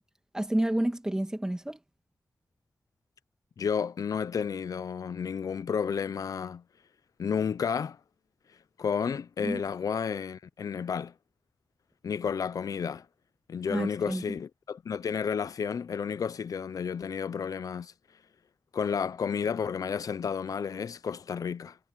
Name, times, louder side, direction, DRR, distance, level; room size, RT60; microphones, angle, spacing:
voice 1, 0.3-1.8 9.4-9.6 13.7-14.2, right 1 dB, 10° right, 2.4 m, -29 dB
voice 2, 3.6-6.6 7.2-8.0 8.8-11.1 12.0-13.1 13.5-17.9 18.7-21.8, left 6 dB, 80° left, 0.6 m, -31 dB
wide cardioid pair, 125°, 6 cm